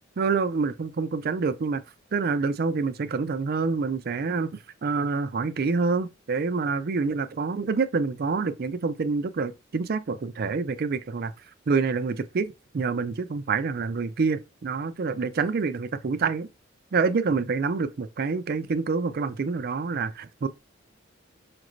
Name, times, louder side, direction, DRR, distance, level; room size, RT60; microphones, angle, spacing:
voice 1, 0.2-1.8 2.1-4.5 4.8-11.3 11.7-16.5 16.9-20.5, right 4 dB, 50° right, 0.4 m, -27 dB
5.1 x 2.5 x 3.0 m
head